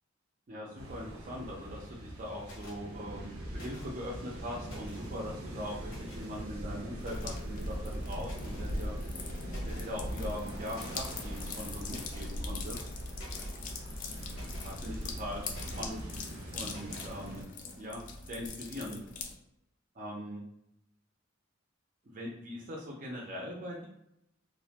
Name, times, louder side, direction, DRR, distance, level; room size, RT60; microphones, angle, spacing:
voice 1, 0.5-8.9 9.6-12.8 14.6-16.1 16.5-17.5 17.8-19.0 19.9-20.4 22.1-23.9, equal, 40° right, -3 dB, 0.4 m, -41 dB
sound 1, 0.7-17.4, equal, 90° right, 0.6 m, -40 dB
sound 2, 2.4-2.8 3.5-4.1 4.5-5.1 5.8-6.4 7.0-7.5 8.2-8.7 9.1-9.2 9.5-9.9 10.7-11.1 11.9-12.3 12.7-13.6 14.3-14.7 15.5-16.0 16.7-17.1, left 1 dB, 80° left, 0.8 m, -52 dB
sound 3, 7.0-19.4, left 5 dB, 40° left, 0.3 m, -44 dB
2.3 x 2.1 x 2.8 m, 0.81 s
head